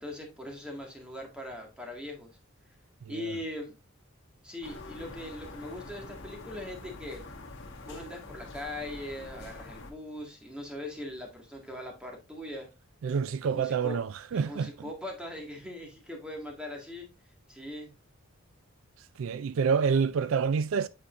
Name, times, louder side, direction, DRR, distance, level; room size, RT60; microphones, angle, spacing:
voice 1, 0.0-2.3 3.1-3.8 4.4-7.2 7.9-12.7 13.4-17.1 17.5-17.9, left 1 dB, 5° right, 1.7 m, -40 dB
sound 1, 4.6-9.9, left 2 dB, 60° left, 1.6 m, -45 dB
voice 2, 13.0-14.7 19.2-20.9, right 6 dB, 75° right, 0.4 m, -27 dB
8.3 x 5.0 x 2.5 m
head